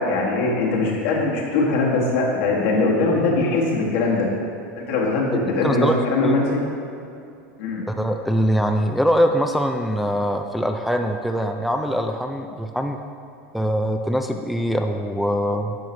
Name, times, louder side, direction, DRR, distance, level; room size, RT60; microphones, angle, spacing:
voice 1, 0.0-4.3 4.7-6.6 7.6-7.8, left 3 dB, 70° left, -3 dB, 1.6 m, -21 dB
voice 2, 5.5-5.9 6.2-6.3 7.9-13.0 13.5-15.8, equal, ahead, 4 dB, 0.3 m, -23 dB
9.1 x 5.7 x 3.2 m, 2.6 s
supercardioid pair, 130°, 7 cm